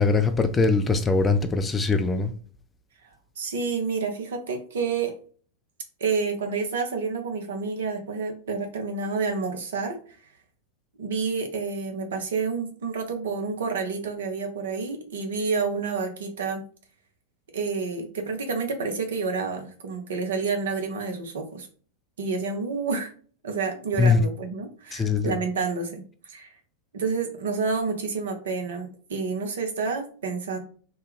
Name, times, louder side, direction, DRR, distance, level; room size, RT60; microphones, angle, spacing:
voice 1, 0.0-2.3 24.0-24.2 24.9-25.3, left 4 dB, 15° left, 0.4 m, -22 dB
voice 2, 3.4-5.1 6.0-10.0 11.0-16.6 17.5-21.7 22.2-23.1 23.4-26.5 26.9-30.6, right 4 dB, 60° right, 0.7 m, -29 dB
3.1 x 2.1 x 3.3 m
figure-of-eight pair, 90°, 0 cm